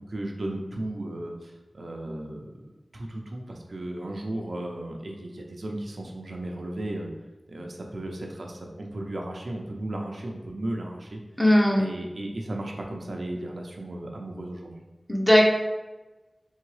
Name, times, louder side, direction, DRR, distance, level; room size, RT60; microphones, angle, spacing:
voice 1, 0.1-2.6 2.9-7.1 7.5-11.2 11.8-14.7, right 1 dB, 75° right, 1 dB, 0.6 m, -35 dB
voice 2, 11.4-11.9 15.1-15.5, left 1 dB, 10° left, -1 dB, 0.8 m, -18 dB
3.7 x 3.6 x 3.2 m, 1.1 s
wide cardioid pair, 55°, 0 cm